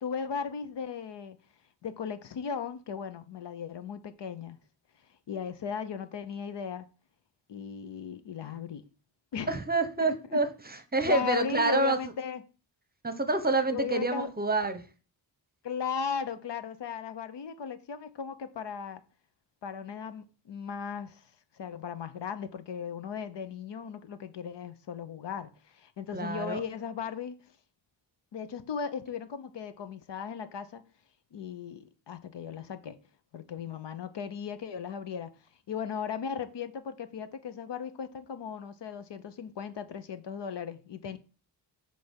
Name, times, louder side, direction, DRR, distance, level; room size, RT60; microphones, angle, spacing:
voice 1, 0.0-1.4 1.8-4.6 5.3-6.9 7.5-8.8 9.3-9.5 10.0-10.4 11.1-12.4 13.7-14.3 15.6-19.0 19.6-21.2 21.6-27.4 28.3-30.8 31.3-33.0 33.3-35.3 35.7-41.2, left 7 dB, 65° left, 0.8 m, -37 dB
voice 2, 9.5-12.0 13.0-14.8 26.1-26.6, right 2 dB, 20° right, 0.8 m, -27 dB
7.6 x 3.4 x 5.2 m
cardioid pair, 85°, 45 cm